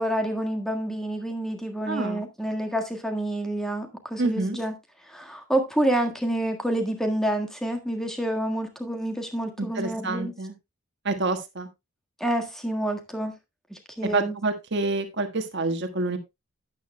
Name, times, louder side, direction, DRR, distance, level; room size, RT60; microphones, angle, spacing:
voice 1, 0.0-4.7 5.1-10.3 12.2-13.3 13.7-14.3, right 1 dB, ahead, 1.6 m, -28 dB
voice 2, 1.9-2.2 4.2-4.6 9.6-10.5 11.0-11.7 14.1-16.2, right 2 dB, 55° right, 1.5 m, -27 dB
12.0 x 9.4 x 2.2 m
head